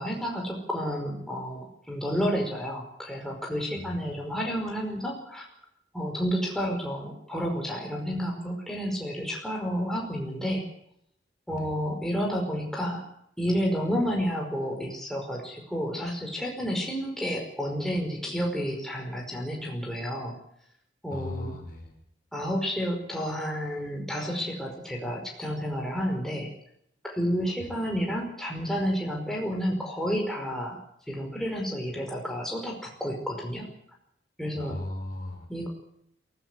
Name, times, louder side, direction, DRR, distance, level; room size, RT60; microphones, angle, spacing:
voice 1, 0.0-5.4 5.9-10.6 11.5-13.0 13.4-20.3 21.0-21.5 22.3-26.5 27.0-30.8 31.1-33.7 34.4-34.8 35.5-35.7, equal, ahead, 0 dB, 5.2 m, -30 dB
voice 2, 21.1-21.9 27.6-27.7 34.5-35.5, left 2 dB, 45° left, 4 dB, 4.7 m, -37 dB
22.5 x 16.0 x 8.2 m, 0.73 s
head